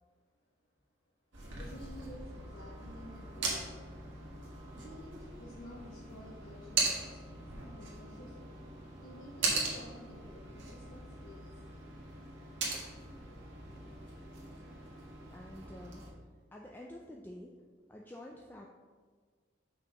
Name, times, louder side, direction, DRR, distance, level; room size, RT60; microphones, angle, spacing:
sound 1, 1.3-16.1, right 3 dB, 75° right, 1.7 m, -40 dB
voice 1, 1.5-3.8 4.8-11.8, equal, 85° left, -6 dB, 1.2 m, -52 dB
voice 2, 15.3-16.1 16.5-17.5 17.9-18.7, left 1 dB, 10° left, -1 dB, 0.4 m, -48 dB
5.8 x 4.3 x 5.8 m, 1.5 s
head